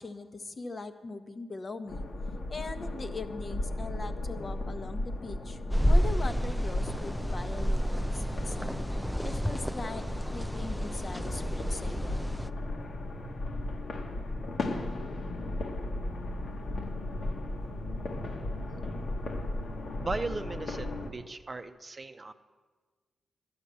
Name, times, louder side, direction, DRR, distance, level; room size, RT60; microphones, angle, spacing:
voice 1, 0.0-2.0 2.5-5.6 5.9-8.6 9.2-10.1 10.3-12.2, left 3 dB, 40° left, 7 dB, 1.0 m, -40 dB
sound 1, 1.9-21.1, left 2 dB, 70° left, 1.5 m, -36 dB
sound 2, 5.7-12.5, equal, ahead, 0.4 m, -30 dB
voice 2, 20.0-22.3, right 3 dB, 35° right, 8 dB, 0.7 m, -37 dB
11.5 x 9.6 x 6.9 m, 1.4 s
cardioid pair, 60°, 0 cm